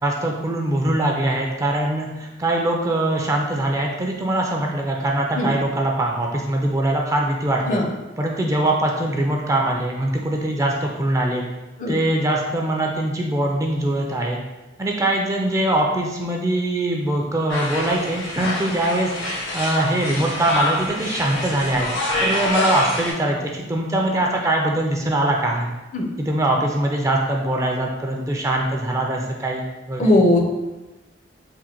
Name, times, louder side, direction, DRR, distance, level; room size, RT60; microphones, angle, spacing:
voice 1, 0.0-7.8 8.2-11.4 11.9-14.4 14.8-21.9 22.2-25.7 26.2-30.1, right 1 dB, 15° right, 0 dB, 0.4 m, -22 dB
sound 1, 17.5-23.1, left 1 dB, 90° left, 1.2 m, -26 dB
voice 2, 30.0-30.5, left 1 dB, 45° left, 1 dB, 0.5 m, -18 dB
3.7 x 2.1 x 4.3 m, 1.1 s
head